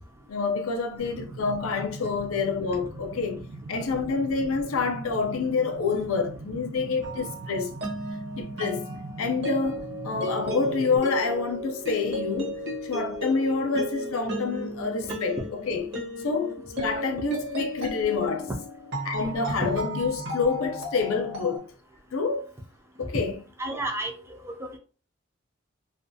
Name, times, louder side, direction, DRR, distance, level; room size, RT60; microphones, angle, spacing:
voice 1, 0.3-3.4 3.7-7.7 8.3-8.9 9.2-12.6 12.8-15.4 15.7-15.9 16.2-18.5 19.0-21.6 22.1-22.5 23.0-23.4, left 4 dB, 90° left, 0.5 m, -27 dB
sound 1, 1.0-11.0, right 2 dB, 85° right, 0.5 m, -42 dB
sound 2, 7.0-21.6, equal, 55° right, 0.9 m, -35 dB
voice 2, 23.6-24.1 24.4-24.8, right 1 dB, 15° right, 0.4 m, -31 dB
2.4 x 2.2 x 2.6 m
head